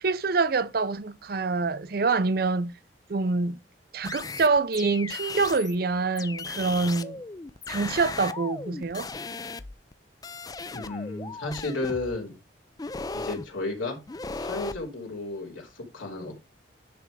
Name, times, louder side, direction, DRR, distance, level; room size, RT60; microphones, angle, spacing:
voice 1, 0.0-2.8 3.1-3.6 3.9-7.2 7.7-9.1, right 4 dB, 50° right, 0.5 m, -26 dB
sound 1, 4.0-5.8 6.2-9.9 10.2-12.2 12.8-13.4 14.1-14.8, left 4 dB, 20° left, 0.3 m, -37 dB
voice 2, 10.7-12.3 13.1-14.0 14.3-16.3, left 2 dB, 90° left, 3.0 m, -33 dB
10.0 x 3.4 x 4.8 m
head